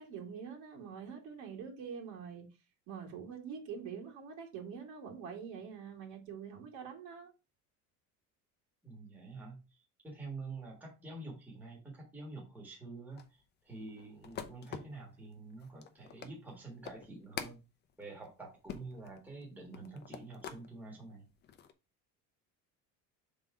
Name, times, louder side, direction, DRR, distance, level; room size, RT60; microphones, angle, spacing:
voice 1, 0.0-2.5 2.9-7.3, right 6 dB, 60° right, 2.3 m, -45 dB
voice 2, 8.8-17.6 18.0-21.3, right 3 dB, 5° right, 1.5 m, -47 dB
sound 1, 13.1-20.7 21.1-21.7, left 8 dB, 30° left, 0.6 m, -47 dB
5.6 x 3.8 x 4.7 m
cardioid pair, 175°, 34 cm